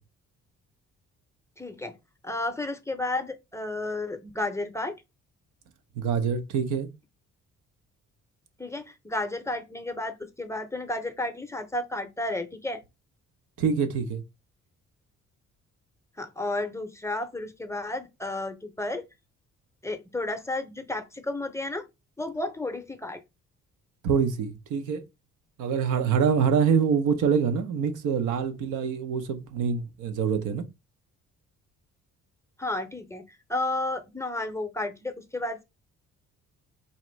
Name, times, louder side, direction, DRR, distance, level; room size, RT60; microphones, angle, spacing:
voice 1, 1.6-1.9 2.2-4.9 8.6-12.8 16.2-19.0 19.8-21.9 22.2-23.2 32.6-33.2 33.5-35.6, left 2 dB, 10° left, 0.6 m, -32 dB
voice 2, 6.0-6.9 13.6-14.2 24.0-25.0 25.6-30.7, right 6 dB, 85° right, 0.7 m, -25 dB
4.1 x 2.5 x 3.1 m
cardioid pair, 90°, 30 cm